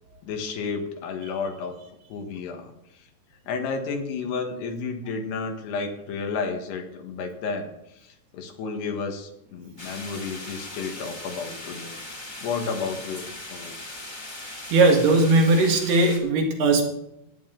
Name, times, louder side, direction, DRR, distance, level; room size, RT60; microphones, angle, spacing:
voice 1, 0.2-1.8 2.1-3.1 3.5-12.0 12.4-13.9, left 4 dB, 80° left, 4 dB, 3.5 m, -32 dB
sound 1, 9.8-16.2, left 1 dB, 15° left, 1.6 m, -39 dB
voice 2, 14.7-16.8, right 2 dB, 75° right, 2 dB, 3.7 m, -18 dB
18.0 x 9.5 x 3.9 m, 0.82 s
omnidirectional pair, 4.7 m